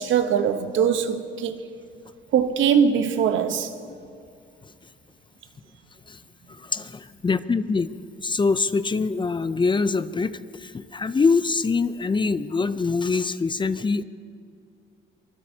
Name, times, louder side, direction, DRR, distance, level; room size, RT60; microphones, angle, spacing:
voice 1, 0.0-1.6 2.3-3.7, right 7 dB, 75° right, 1.0 m, -21 dB
voice 2, 6.5-7.9 8.2-14.0, left 4 dB, 25° left, 0.5 m, -24 dB
25.0 x 20.0 x 2.8 m
cardioid pair, 90°, 20 cm